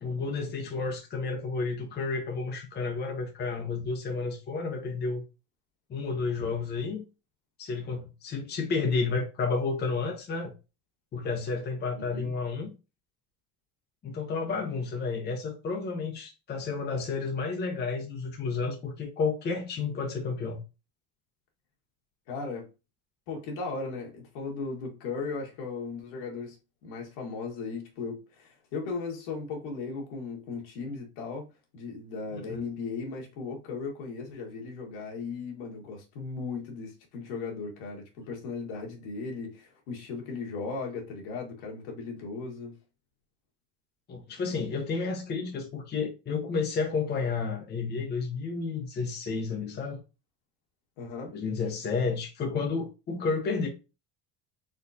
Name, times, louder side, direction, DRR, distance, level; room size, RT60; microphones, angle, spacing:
voice 1, 0.0-5.2 5.9-7.0 7.6-10.5 11.1-12.7 14.0-20.6 32.5-32.6 44.1-50.0 51.3-53.7, left 4 dB, 25° left, 0.9 m, -31 dB
voice 2, 11.9-12.3 22.3-22.7 23.3-26.6 26.8-31.5 31.7-42.8 51.0-51.4, left 4 dB, 75° left, 1.9 m, -37 dB
4.3 x 3.8 x 2.7 m
cardioid pair, 140°, 38 cm